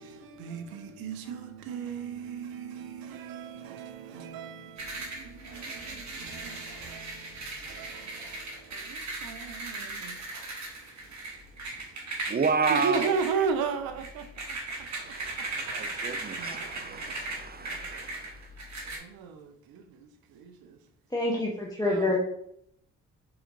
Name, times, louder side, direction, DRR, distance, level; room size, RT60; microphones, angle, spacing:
voice 1, 0.4-4.7 5.7-5.8 6.3-6.6 6.9-7.0 7.8-7.9 9.2-9.7 12.7-14.2 16.4-16.6 21.9-22.2, right 6 dB, 75° right, 0.6 m, -33 dB
sound 1, 4.8-19.0, right 2 dB, 50° right, 1.4 m, -38 dB
voice 2, 12.3-13.1 14.8-18.4, right 5 dB, 30° right, 0.4 m, -31 dB
voice 3, 21.1-22.2, left 2 dB, 10° left, 0.9 m, -27 dB
4.2 x 3.9 x 2.6 m
hypercardioid pair, 40°, 36 cm